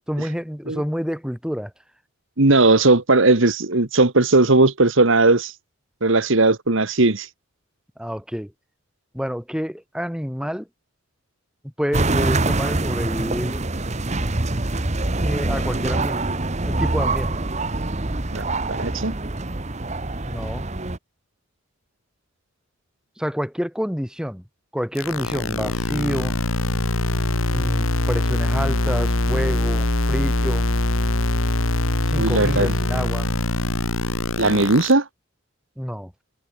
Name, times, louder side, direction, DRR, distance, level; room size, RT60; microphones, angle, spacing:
voice 1, 0.0-1.7 8.0-8.5 9.1-10.7 11.6-13.6 15.2-16.2 16.7-17.4 20.2-20.7 23.2-24.4 24.7-26.4 27.5-30.6 32.1-33.3 35.8-36.1, equal, 5° right, 7.3 m, -28 dB
voice 2, 2.4-5.5 6.0-7.3 18.3-19.1 32.2-32.7 34.4-35.1, right 2 dB, 70° right, 1.7 m, -17 dB
sound 1, 11.9-21.0, right 2 dB, 35° right, 1.3 m, -24 dB
sound 2, 25.0-34.9, left 2 dB, 80° left, 2.3 m, -23 dB
head